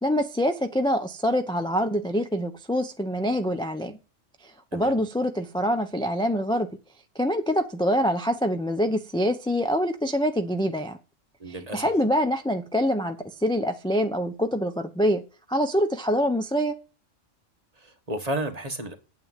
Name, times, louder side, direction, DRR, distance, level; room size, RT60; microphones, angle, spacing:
voice 1, 0.0-4.0 4.4-6.7 7.2-11.0 11.7-15.2 15.5-16.7, equal, 5° left, 0.6 m, -25 dB
voice 2, 4.7-5.0 11.4-11.9 17.7-18.9, right 1 dB, 30° right, 1.6 m, -32 dB
8.9 x 8.6 x 7.4 m
omnidirectional pair, 1.3 m